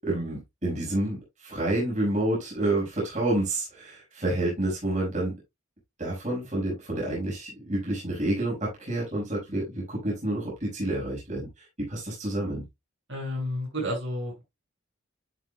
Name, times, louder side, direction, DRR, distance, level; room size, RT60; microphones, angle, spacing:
voice 1, 0.0-1.2 1.4-5.3 6.0-11.5 11.8-12.6, right 1 dB, 35° right, 5.1 m, -29 dB
voice 2, 13.1-14.4, equal, 60° right, 6.0 m, -31 dB
11.5 x 6.3 x 2.2 m
head